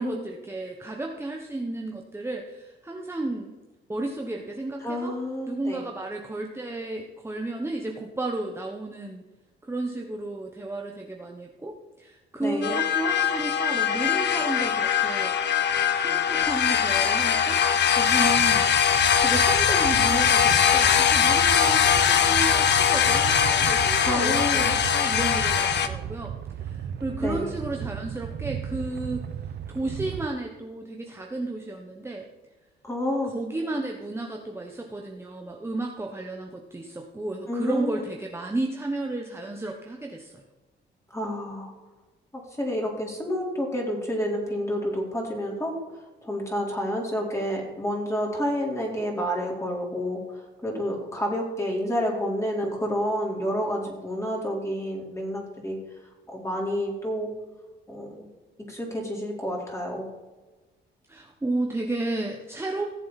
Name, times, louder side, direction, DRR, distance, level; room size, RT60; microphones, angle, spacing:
voice 1, 0.0-3.5 3.9-5.1 5.5-9.2 9.6-15.3 15.9-18.7 19.0-29.2 29.7-32.2 33.2-40.3 61.1-62.9, right 2 dB, 10° right, 1 dB, 1.2 m, -33 dB
voice 2, 4.8-5.8 12.4-12.8 24.0-24.8 27.2-27.5 32.8-33.3 37.5-38.1 41.1-41.7 42.3-45.8 46.2-50.2 50.6-55.8 56.3-57.3 57.9-58.3 58.7-60.1, equal, 15° left, -1 dB, 4.2 m, -29 dB
sound 1, 12.6-25.9, left 8 dB, 60° left, 0.9 m, -21 dB
sound 2, 18.0-30.3, right 9 dB, 60° right, 0.8 m, -35 dB
17.5 x 7.6 x 4.3 m, 1.2 s
cardioid pair, 90°, 20 cm